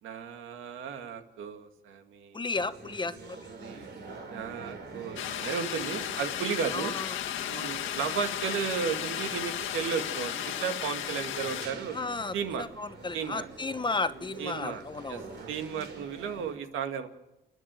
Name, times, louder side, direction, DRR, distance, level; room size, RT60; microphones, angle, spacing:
voice 1, 0.0-2.4 3.6-6.9 7.5-12.0 12.3-12.6 13.1-13.5 14.4-14.8 15.1-15.2 15.5-17.1, right 7 dB, 85° right, 7 dB, 2.0 m, -34 dB
voice 2, 2.3-3.5 6.7-7.2 7.5-7.8 11.9-15.4, left 3 dB, 25° left, 12 dB, 1.0 m, -34 dB
sound 1, 2.5-16.6, right 4 dB, 60° right, 3.9 m, -46 dB
sound 2, 5.2-11.7, left 11 dB, 90° left, 1.8 m, -34 dB
29.0 x 10.0 x 9.1 m, 0.95 s
cardioid pair, 90°, 20 cm